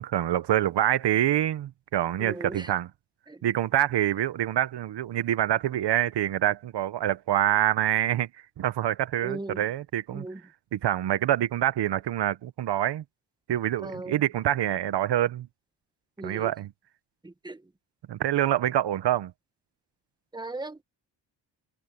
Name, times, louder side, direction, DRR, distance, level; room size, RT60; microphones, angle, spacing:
voice 1, 0.0-2.9 3.4-8.3 8.6-10.3 10.7-13.0 13.5-15.5 16.2-16.7 18.1-19.3, right 12 dB, 65° right, 1.1 m, -26 dB
voice 2, 2.2-2.7 3.3-3.4 9.2-9.6 10.1-10.4 13.8-14.2 16.2-16.5 17.2-17.6 20.3-20.8, right 2 dB, 10° right, 1.4 m, -37 dB
cardioid pair, 85°, 44 cm